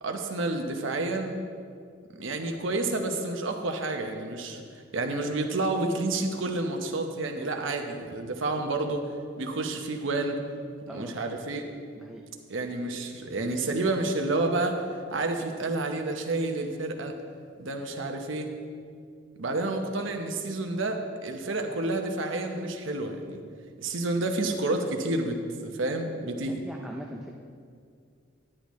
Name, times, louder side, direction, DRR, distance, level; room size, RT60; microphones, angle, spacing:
voice 1, 0.0-1.4 2.2-4.6 4.9-9.1 9.4-10.4 10.9-11.6 12.5-14.8 15.1-17.1 17.6-18.5 19.4-23.4 23.8-26.6, right 2 dB, 70° right, 4 dB, 0.9 m, -29 dB
voice 2, 26.5-27.3, equal, 5° right, 0 dB, 0.4 m, -41 dB
10.0 x 9.9 x 3.1 m, 2.2 s
head